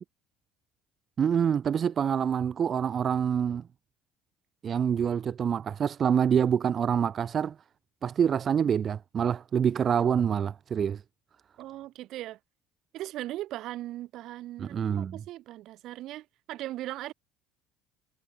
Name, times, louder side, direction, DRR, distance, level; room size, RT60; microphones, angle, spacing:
voice 1, 1.2-3.7 4.6-7.6 8.0-11.0 14.6-15.2, right 8 dB, 40° right, 1.0 m, -26 dB
voice 2, 11.6-12.4 12.9-17.1, right 15 dB, 60° right, 6.4 m, -38 dB
supercardioid pair, 110°, 0 cm